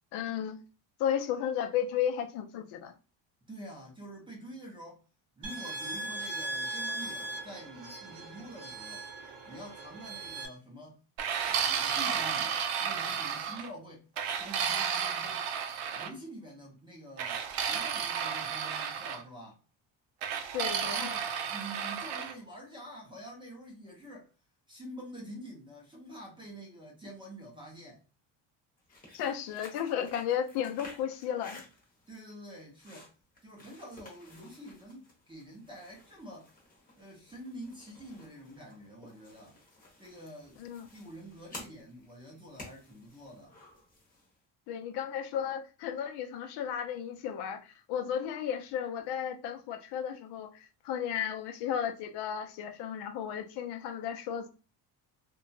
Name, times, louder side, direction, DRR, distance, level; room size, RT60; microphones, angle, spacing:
voice 1, 0.1-0.6 1.0-2.9 20.5-21.1 29.1-31.6 40.6-40.9 44.7-54.5, left 9 dB, 65° left, 0.5 m, -34 dB
voice 2, 3.5-5.0 5.4-9.1 9.5-11.0 11.4-14.1 14.4-15.5 15.9-19.6 20.8-24.3 24.7-28.0 32.1-33.1 33.4-36.5 36.9-39.6 40.0-40.6 40.9-43.6, right 1 dB, 10° right, 0.4 m, -47 dB
sound 1, 5.4-10.5, right 2 dB, 45° right, 0.8 m, -39 dB
sound 2, 11.2-13.7 14.2-16.1 17.2-19.2 20.2-22.3, right 7 dB, 85° right, 0.6 m, -32 dB
sound 3, 28.8-44.4, left 2 dB, 20° left, 0.7 m, -54 dB
2.7 x 2.2 x 2.6 m
cardioid pair, 160°, 44 cm